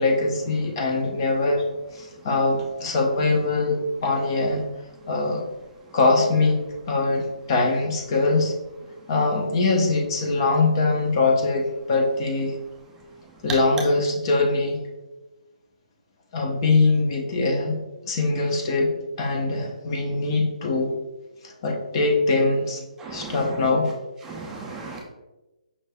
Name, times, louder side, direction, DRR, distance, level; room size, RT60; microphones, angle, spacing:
voice 1, 0.0-1.6 2.0-4.6 5.1-5.4 5.9-6.6 6.9-8.5 9.1-12.5 13.4-14.8 16.3-18.9 19.2-20.9 21.6-22.8 23.1-23.9, left 3 dB, 40° left, 2 dB, 0.7 m, -22 dB
voice 2, 23.0-23.6 24.2-25.0, right 4 dB, 10° right, -1 dB, 0.3 m, -36 dB
5.3 x 3.2 x 2.2 m, 1.1 s
hypercardioid pair, 155°, 4 cm